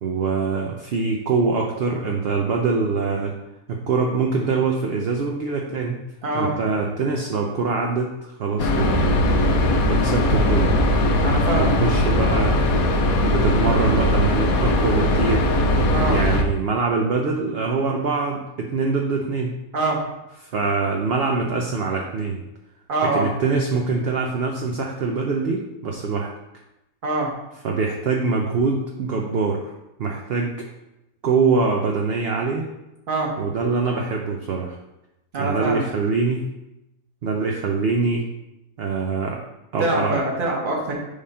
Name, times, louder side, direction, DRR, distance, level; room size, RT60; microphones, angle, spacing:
voice 1, 0.0-3.3 3.7-6.0 6.3-9.2 9.9-10.7 11.6-12.6 13.2-15.5 16.1-19.5 20.4-22.4 23.0-26.3 27.6-29.7 30.0-30.6 31.2-32.7 33.4-34.8 35.4-36.5 37.2-38.3 38.8-39.4 39.7-40.2, right 4 dB, 60° right, 1 dB, 0.6 m, -24 dB
voice 2, 6.2-6.5 11.2-11.7 15.9-16.2 19.7-20.0 22.9-23.3 27.0-27.3 33.1-33.3 35.3-35.9 39.8-40.9, right 2 dB, 35° right, -2 dB, 1.3 m, -24 dB
sound 1, 8.6-16.4, left 1 dB, 75° left, 1.1 m, -19 dB
5.0 x 3.5 x 5.4 m, 0.93 s
omnidirectional pair, 1.6 m